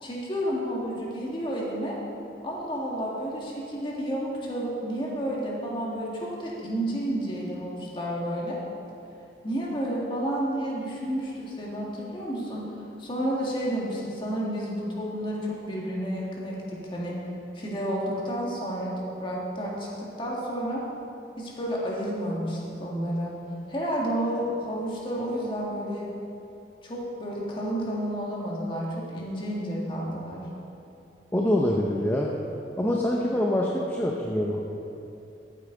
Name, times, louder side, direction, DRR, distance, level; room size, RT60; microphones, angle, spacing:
voice 1, 0.0-2.0 2.4-8.6 9.4-12.7 13.0-17.2 17.5-20.8 21.4-23.4 23.7-26.1 26.8-30.5, equal, 30° left, -4 dB, 2.0 m, -31 dB
voice 2, 31.3-32.3 32.8-34.6, left 1 dB, 10° left, -2 dB, 0.6 m, -25 dB
14.0 x 8.4 x 3.9 m, 2.8 s
head